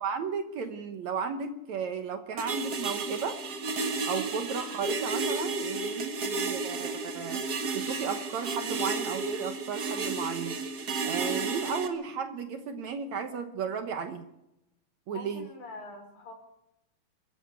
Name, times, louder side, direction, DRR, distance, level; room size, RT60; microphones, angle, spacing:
voice 1, 0.0-3.4 4.1-7.4 7.7-10.6 11.0-14.3 15.1-15.5, right 6 dB, 65° right, 8 dB, 1.9 m, -34 dB
sound 1, 2.4-11.9, right 4 dB, 45° right, 1.2 m, -32 dB
voice 2, 15.1-16.3, left 2 dB, 50° left, 3 dB, 5.9 m, -44 dB
23.5 x 13.5 x 8.2 m, 0.88 s
omnidirectional pair, 4.4 m